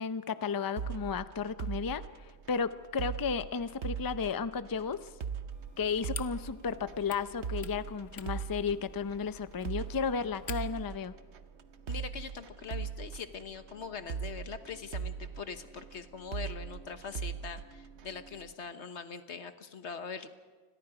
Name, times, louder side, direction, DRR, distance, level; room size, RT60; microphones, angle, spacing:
voice 1, 0.0-2.0 2.5-5.1 5.8-11.1, left 6 dB, 30° left, 13 dB, 0.5 m, -33 dB
sound 1, 0.8-18.5, right 7 dB, 85° right, 1.1 m, -41 dB
sound 2, 5.5-10.9, left 6 dB, 70° left, 1.3 m, -49 dB
voice 2, 11.9-20.3, left 6 dB, 90° left, 9 dB, 1.5 m, -42 dB
29.0 x 21.5 x 5.0 m, 1.4 s
omnidirectional pair, 1.1 m